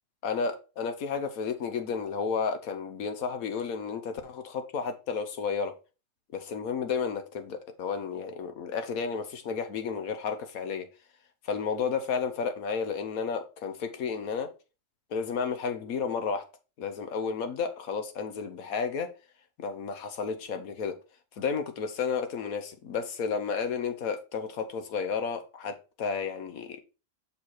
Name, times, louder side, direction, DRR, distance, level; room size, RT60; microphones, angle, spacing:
voice 1, 0.2-5.7 6.3-10.9 11.4-14.5 15.1-16.4 16.8-19.1 19.6-21.0 21.4-26.8, left 5 dB, 70° left, 1.4 m, -32 dB
6.1 x 4.8 x 4.4 m
omnidirectional pair, 1.6 m